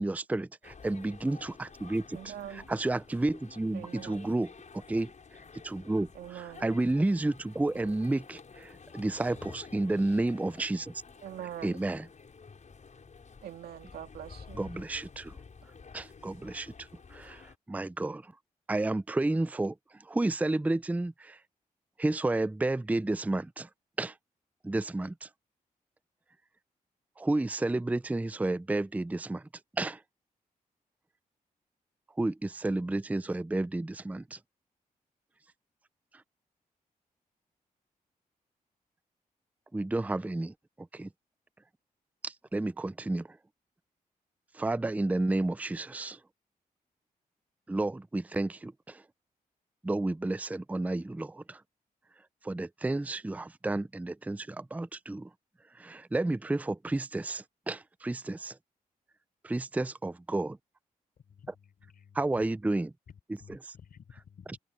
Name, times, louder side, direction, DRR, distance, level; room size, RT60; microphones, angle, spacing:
voice 1, 0.0-5.1 5.6-10.9 11.6-12.0 14.6-15.3 15.9-17.4 17.7-18.3 18.7-19.7 20.1-21.4 22.0-23.7 24.0-24.1 24.6-25.3 27.2-29.4 29.8-30.0 32.2-34.4 39.7-40.5 40.9-41.1 42.2-43.3 44.5-46.2 47.7-49.0 49.8-51.6 52.4-55.3 55.8-58.6 59.4-60.6 62.2-62.9, right 2 dB, 10° right, 0.4 m, -31 dB
sound 1, 0.6-17.5, left 5 dB, 55° left, 6.5 m, -51 dB
voice 2, 2.1-2.7 3.7-4.2 6.1-6.7 7.7-8.1 11.2-11.8 13.4-14.7, right 11 dB, 90° right, 2.1 m, -43 dB
voice 3, 61.2-62.4 63.1-64.6, left 7 dB, 70° left, 5.4 m, -54 dB
cardioid pair, 55°, 16 cm